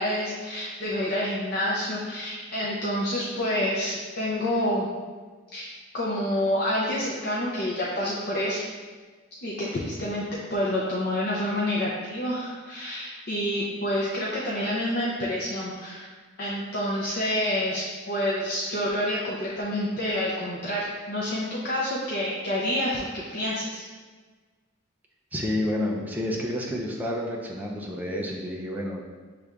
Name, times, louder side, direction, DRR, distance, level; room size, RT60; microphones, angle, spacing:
voice 1, 0.0-4.9 5.5-8.6 9.4-16.1 16.4-23.8, left 1 dB, 50° left, -5 dB, 0.6 m, -28 dB
voice 2, 25.3-29.0, left 1 dB, 10° right, -2 dB, 0.5 m, -29 dB
6.6 x 3.3 x 2.4 m, 1.4 s
head